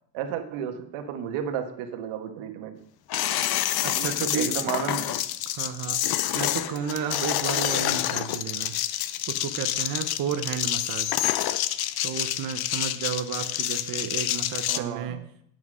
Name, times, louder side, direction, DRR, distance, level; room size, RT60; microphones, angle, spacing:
voice 1, 0.1-2.8 3.9-5.2 14.7-15.2, right 8 dB, 85° right, 7 dB, 1.5 m, -33 dB
sound 1, 3.1-14.8, left 13 dB, 50° left, 0.6 m, -28 dB
voice 2, 3.8-4.7 5.5-6.0 6.3-8.7 9.3-11.1 12.0-15.2, right 8 dB, 45° right, 7 dB, 0.8 m, -32 dB
9.6 x 6.0 x 6.2 m, 0.69 s
cardioid pair, 135°, 48 cm